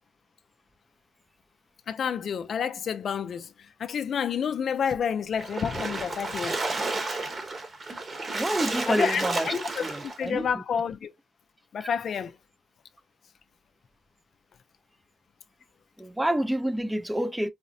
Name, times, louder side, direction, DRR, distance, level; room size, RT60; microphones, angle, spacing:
voice 1, 1.9-6.6 8.9-11.1 11.7-12.3, left 7 dB, 55° left, 0.3 m, -29 dB
Splash splatter, 5.4-10.2, right 3 dB, 35° right, 1.0 m, -32 dB
voice 2, 8.3-9.5 9.8-10.8 11.8-11.9 16.0-17.5, right 1 dB, 5° right, 0.4 m, -28 dB
4.8 x 2.0 x 2.6 m
cardioid pair, 90°, 0 cm